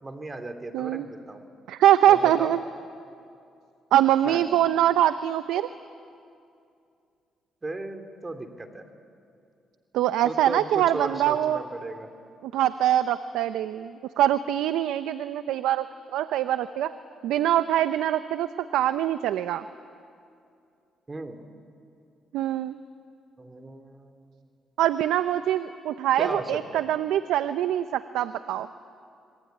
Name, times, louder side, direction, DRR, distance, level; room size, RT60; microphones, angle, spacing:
voice 1, 0.0-1.4 2.1-2.5 4.2-4.5 7.6-8.8 10.2-12.1 21.1-21.4 23.4-24.5 26.2-26.9, right 2 dB, 25° right, 7 dB, 2.7 m, -36 dB
voice 2, 0.7-1.1 1.7-2.6 3.9-5.7 9.9-11.6 12.4-15.9 16.1-16.9 17.2-19.6 22.3-22.8 24.8-28.7, right 11 dB, 90° right, 12 dB, 0.6 m, -23 dB
26.0 x 22.5 x 9.3 m, 2.4 s
cardioid pair, 90°, 0 cm